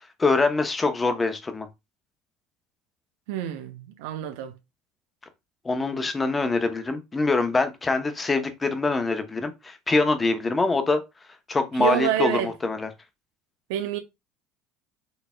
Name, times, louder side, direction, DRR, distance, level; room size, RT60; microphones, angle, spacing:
voice 1, 0.2-1.7 5.6-11.0 11.5-12.9, left 3 dB, 20° left, 0.7 m, -24 dB
voice 2, 3.3-4.5 11.8-12.5 13.7-14.0, right 12 dB, 75° right, 0.6 m, -27 dB
4.1 x 3.2 x 2.2 m
hypercardioid pair, 75°, 0 cm